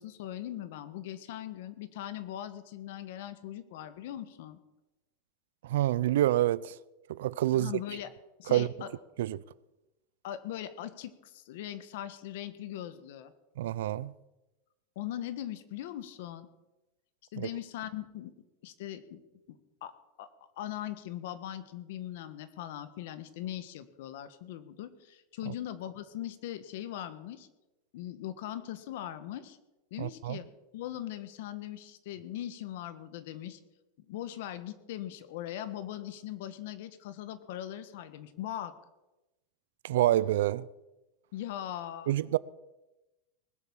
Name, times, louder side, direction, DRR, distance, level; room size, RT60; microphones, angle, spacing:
voice 1, 0.0-4.6 7.5-8.1 8.4-8.9 10.2-13.3 14.9-16.5 17.3-18.3 18.6-19.2 19.5-19.9 20.2-20.3 20.6-27.5 27.9-29.6 29.9-30.4 30.7-33.6 34.0-38.7 41.3-42.1, left 12 dB, 60° left, 1.3 m, -40 dB
voice 2, 5.6-6.8 7.1-7.7 8.5-8.7 9.2-9.4 13.6-14.1 17.4-17.5 25.5-25.6 30.0-30.4 39.8-40.7 42.1-42.4, right 13 dB, 80° right, 0.5 m, -27 dB
19.5 x 8.1 x 7.3 m
supercardioid pair, 175°, 0 cm